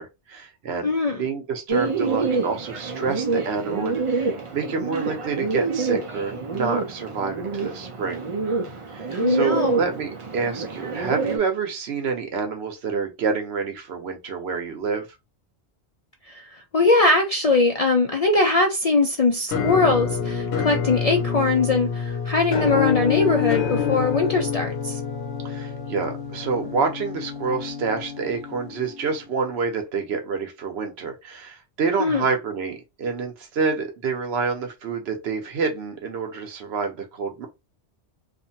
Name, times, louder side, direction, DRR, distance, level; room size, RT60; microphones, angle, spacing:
voice 1, 0.0-8.2 8.9-15.1 25.4-37.5, right 5 dB, 70° right, 1.0 m, -28 dB
voice 2, 0.8-1.2 9.1-9.8 16.3-25.0 32.0-32.2, left 3 dB, 55° left, 0.4 m, -21 dB
Bird, 1.7-11.4, right 4 dB, 45° right, 0.4 m, -27 dB
Musical instrument, 19.5-29.3, left 7 dB, 70° left, 0.9 m, -27 dB
2.6 x 2.5 x 2.7 m
omnidirectional pair, 1.1 m